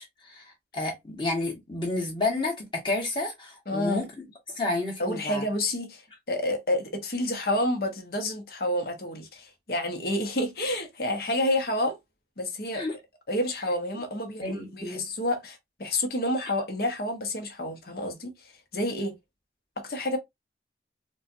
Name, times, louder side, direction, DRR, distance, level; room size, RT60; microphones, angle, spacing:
voice 1, 0.0-4.1 4.5-5.4 12.7-13.0 14.4-15.0, left 2 dB, 25° left, 1.4 m, -31 dB
voice 2, 3.7-4.0 5.0-12.0 12.4-12.8 13.3-19.2 19.8-20.2, left 1 dB, 55° left, 1.0 m, -29 dB
4.3 x 2.3 x 2.6 m
head